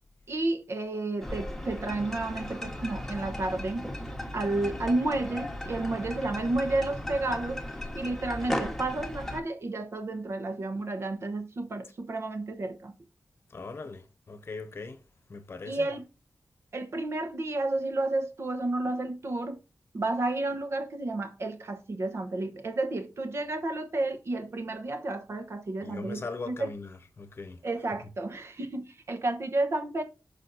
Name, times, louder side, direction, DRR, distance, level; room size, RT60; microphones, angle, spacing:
voice 1, 0.3-3.9 4.3-7.6 7.9-12.9 15.6-16.1 16.7-19.6 19.9-26.7 27.6-30.0, right 2 dB, 55° right, 1.1 m, -31 dB
sound 1, 1.2-9.4, left 1 dB, 5° left, 1.2 m, -36 dB
sound 2, 1.9-7.4, equal, 30° right, 1.2 m, -49 dB
voice 2, 13.5-15.0 15.3-15.9 25.8-27.6, left 3 dB, 45° left, 0.9 m, -40 dB
6.4 x 5.0 x 4.0 m
wide cardioid pair, 160°, 6 cm